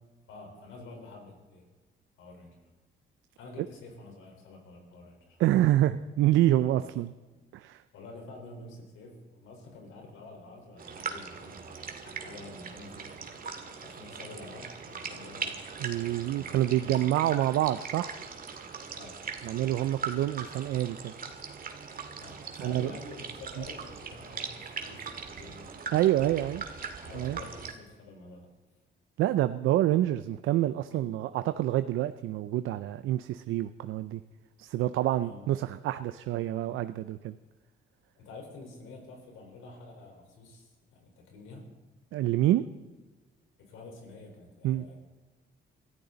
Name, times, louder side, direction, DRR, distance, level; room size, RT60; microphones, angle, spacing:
voice 1, 0.3-1.6 2.2-2.6 3.4-5.4 7.9-13.2 13.8-15.6 16.3-17.1 18.9-19.2 22.2-25.7 27.0-28.5 30.9-31.0 35.2-35.5 38.2-41.7 43.6-44.9, left 3 dB, 90° left, 2 dB, 4.4 m, -48 dB
voice 2, 5.4-7.1 7.5-7.8 15.8-18.1 19.4-21.1 22.6-22.9 25.9-26.6 27.2-27.4 29.2-34.2 34.6-37.3 42.1-42.6 44.6-44.8, right 13 dB, 85° right, 11 dB, 0.5 m, -27 dB
sound 1, 10.8-27.7, right 5 dB, 45° right, 2.0 m, -40 dB
22.5 x 14.0 x 4.0 m, 1.3 s
cardioid pair, 90°, 20 cm